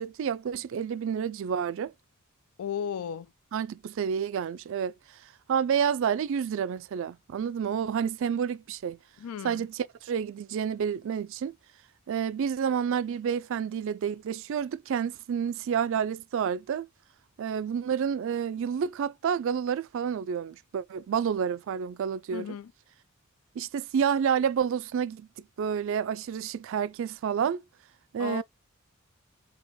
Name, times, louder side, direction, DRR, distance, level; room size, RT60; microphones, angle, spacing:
voice 1, 0.0-1.9 3.5-5.0 5.5-9.0 9.4-11.5 12.1-16.9 17.4-22.6 23.6-25.3 25.6-27.6 28.1-28.4, right 7 dB, 65° right, 0.3 m, -29 dB
voice 2, 2.6-3.3 9.2-9.7 22.3-22.7 28.2-28.4, left 8 dB, 80° left, 0.4 m, -35 dB
3.8 x 2.8 x 3.2 m
head